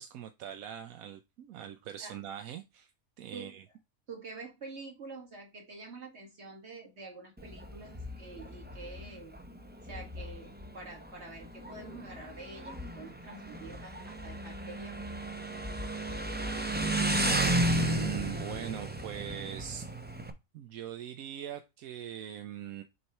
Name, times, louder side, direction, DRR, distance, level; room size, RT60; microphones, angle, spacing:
voice 1, 0.0-2.9 3.2-3.6 17.2-19.9 20.5-22.8, right 10 dB, 80° right, 1.1 m, -41 dB
voice 2, 4.1-9.5 9.8-15.1, right 3 dB, 50° right, 2.2 m, -47 dB
Motorcycle, 7.4-20.3, right 1 dB, 15° right, 0.4 m, -34 dB
6.9 x 3.3 x 4.2 m
omnidirectional pair, 1.5 m